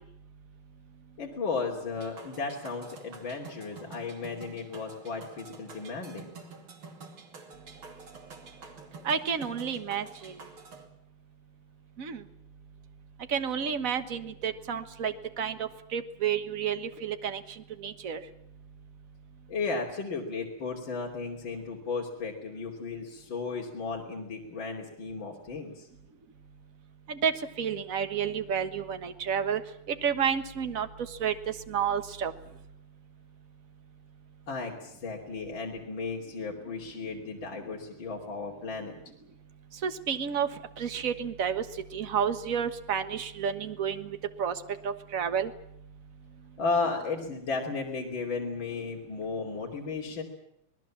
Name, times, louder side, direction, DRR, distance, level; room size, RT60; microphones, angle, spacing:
voice 1, 1.2-6.3 19.5-25.9 34.5-39.0 46.6-50.2, left 4 dB, 65° left, -1 dB, 3.7 m, -34 dB
sound 1, 1.9-10.9, right 4 dB, 70° right, 3.5 m, -48 dB
voice 2, 9.0-10.3 12.0-12.2 13.3-17.4 17.8-18.2 27.1-27.3 27.6-29.6 29.9-30.9 31.2-31.3 31.7-32.3 39.8-40.5 40.8-41.6 41.9-44.1 44.4-44.5 44.8-45.5, right 7 dB, 45° right, 9 dB, 1.7 m, -30 dB
27.0 x 19.5 x 7.4 m, 0.78 s
omnidirectional pair, 2.3 m